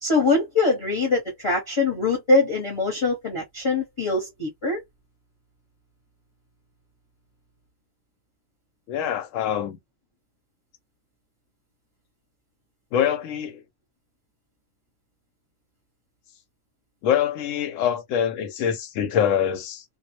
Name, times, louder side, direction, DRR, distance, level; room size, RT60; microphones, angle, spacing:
voice 1, 0.0-4.8, left 3 dB, 25° left, 0.8 m, -23 dB
voice 2, 8.9-9.8 12.9-13.6 17.0-19.8, left 9 dB, 75° left, 0.9 m, -24 dB
2.2 x 2.0 x 2.9 m
omnidirectional pair, 1.3 m